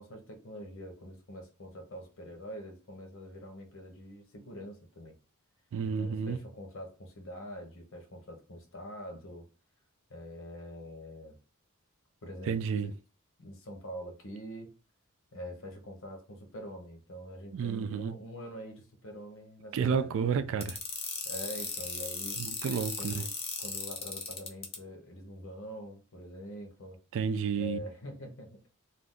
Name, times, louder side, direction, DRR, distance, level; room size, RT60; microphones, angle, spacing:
voice 1, 0.0-5.1 5.8-9.4 10.1-11.4 12.2-12.6 12.8-12.9 13.4-14.7 15.3-20.7 21.2-22.4 22.9-23.3 23.6-27.0 27.6-28.6, equal, 65° left, 0.9 m, -45 dB
voice 2, 5.7-6.4 12.5-12.9 17.5-18.1 19.7-20.8 22.4-23.2 27.1-27.8, right 6 dB, 65° right, 0.3 m, -31 dB
sound 1, 20.6-24.8, left 5 dB, 30° left, 0.6 m, -36 dB
2.6 x 2.3 x 3.6 m
head